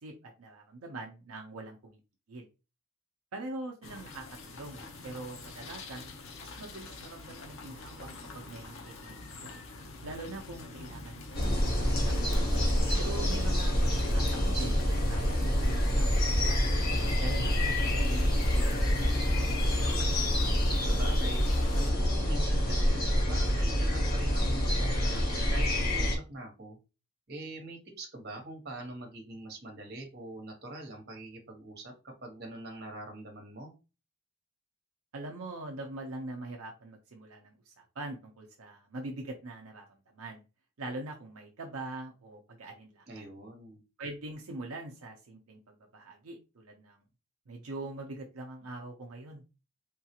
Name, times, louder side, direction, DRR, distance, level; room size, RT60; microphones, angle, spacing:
voice 1, 0.0-2.0 2.3-2.5 3.3-9.5 10.0-11.7 12.0-12.1 13.0-16.6 17.2-18.7 19.0-19.2 19.4-20.2 35.1-40.4 40.8-43.3 44.0-47.0 47.5-49.4, right 2 dB, 85° right, 1 dB, 0.6 m, -43 dB
sound 1, 3.8-21.9, left 3 dB, 65° left, 0.7 m, -45 dB
sound 2, 11.3-26.2, equal, 45° left, 1.3 m, -27 dB
voice 2, 12.3-12.7 20.7-21.5 21.7-25.2 25.5-26.8 27.3-33.7 43.1-43.8, right 1 dB, 50° right, 2 dB, 1.2 m, -44 dB
3.6 x 2.4 x 2.8 m, 0.30 s
head